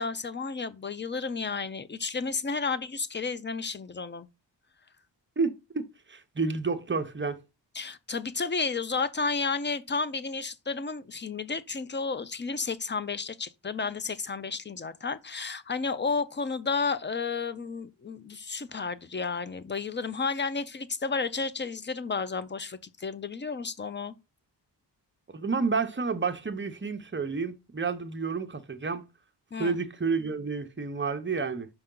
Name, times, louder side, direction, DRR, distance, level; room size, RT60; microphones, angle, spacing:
voice 1, 0.0-4.3 7.7-24.1 29.5-29.8, left 4 dB, 25° left, 0.5 m, -32 dB
voice 2, 5.4-5.8 6.1-7.4 25.3-29.0 29.6-31.7, right 4 dB, 25° right, 0.7 m, -30 dB
5.7 x 5.4 x 3.8 m
wide cardioid pair, 135°, 43 cm